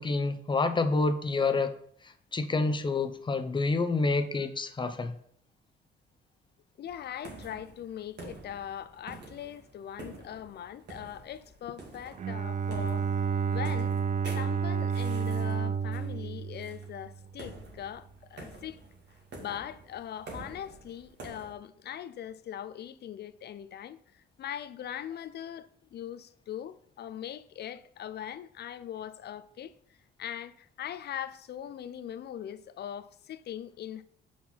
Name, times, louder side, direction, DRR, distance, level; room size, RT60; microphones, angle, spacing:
voice 1, 0.0-1.7 2.3-5.1, left 3 dB, 25° left, 0.8 m, -28 dB
voice 2, 6.8-13.0 13.5-14.0 14.3-18.8 19.4-29.7 30.2-34.0, left 10 dB, 55° left, 0.5 m, -41 dB
sound 1, 6.8-21.5, right 2 dB, 60° right, 2.0 m, -48 dB
Bowed string instrument, 12.2-17.4, right 6 dB, 40° right, 0.4 m, -31 dB
5.8 x 4.7 x 5.6 m
cardioid pair, 90°, 20 cm